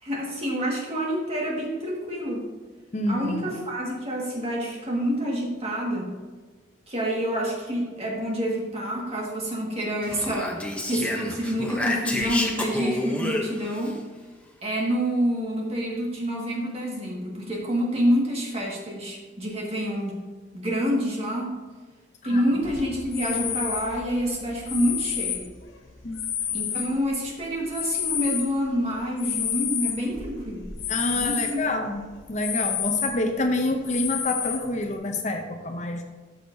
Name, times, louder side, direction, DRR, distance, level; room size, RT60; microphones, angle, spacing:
voice 1, 0.0-2.5 3.1-6.2 6.9-14.1 14.6-20.2 20.5-21.6 22.2-25.5 26.5-30.7 31.2-31.6, equal, 30° right, -2 dB, 1.8 m, -27 dB
voice 2, 2.9-3.5 22.3-22.4 26.0-26.2 30.9-36.0, left 1 dB, 35° left, 5 dB, 0.6 m, -27 dB
Speech, 10.0-13.9, left 1 dB, 5° left, 0.8 m, -29 dB
sound 1, 22.6-27.3 27.7-31.6 32.0-32.1 32.4-33.4 33.9-34.9, left 9 dB, 75° left, 0.9 m, -30 dB
13.0 x 6.2 x 2.7 m, 1.4 s
head